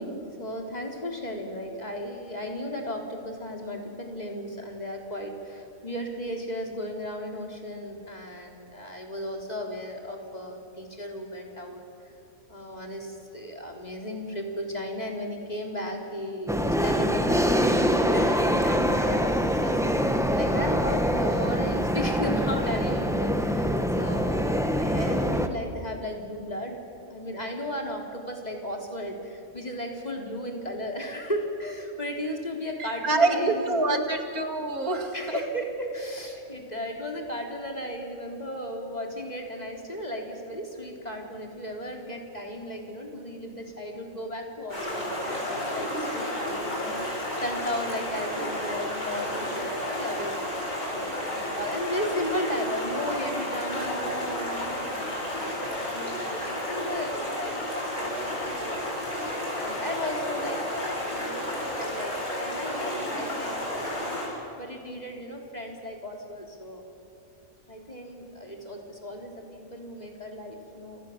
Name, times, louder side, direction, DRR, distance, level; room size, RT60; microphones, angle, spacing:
voice 1, 0.0-11.8 12.5-19.3 19.6-20.0 20.3-26.8 27.1-34.1 35.1-50.6 50.9-59.3 59.5-64.2 64.6-66.9 67.7-71.0, equal, 30° left, 1 dB, 3.7 m, -35 dB
sound 1, 16.5-25.5, equal, ahead, 1.4 m, -24 dB
voice 2, 32.8-35.4, right 3 dB, 90° right, 5 dB, 2.9 m, -26 dB
Stream, 44.7-64.3, left 1 dB, 90° left, 8.0 m, -32 dB
29.0 x 26.5 x 7.4 m, 2.6 s
omnidirectional pair, 1.5 m